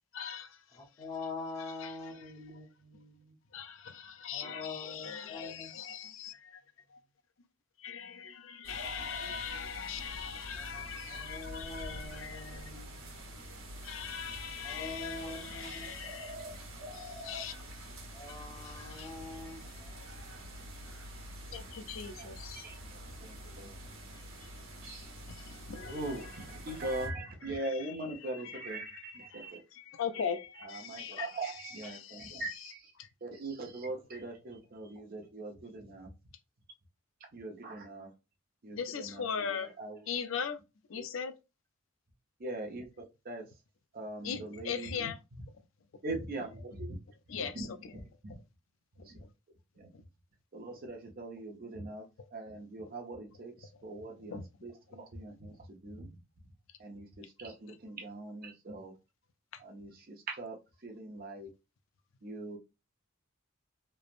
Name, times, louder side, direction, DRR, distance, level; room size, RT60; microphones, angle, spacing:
voice 1, 0.1-1.0 1.6-2.3 3.5-6.6 6.9-7.0 7.8-12.9 13.8-16.4 16.9-17.8 18.2-20.4 21.5-22.6 23.9-24.5 25.0-26.3 27.5-28.0 28.2-32.4 33.0-33.1 38.7-39.7 40.1-40.6 40.9-41.3 44.2-45.2 45.5-45.6 47.3-47.9 49.0-49.3 49.9-50.0 54.3-54.4 56.7-56.8 59.5-59.6, left 7 dB, 70° left, 0.4 m, -41 dB
voice 2, 0.7-3.4 4.3-5.7 10.6-13.4 14.6-16.1 18.1-20.7, left 3 dB, 30° left, 0.8 m, -45 dB
sound 1, 8.6-27.1, equal, 75° right, 1.2 m, -46 dB
voice 3, 22.2-23.9 25.9-29.6 30.6-32.9 33.2-36.1 37.3-38.1 38.6-40.0 42.4-42.9 43.2-43.5 43.9-45.1 46.0-47.0 47.4-47.6 48.2-48.3 49.0-49.2 49.8-49.9 50.5-52.1 52.3-56.2 56.8-58.9 59.6-61.5 62.2-62.6, right 2 dB, 45° right, 0.6 m, -41 dB
3.2 x 2.0 x 2.4 m
head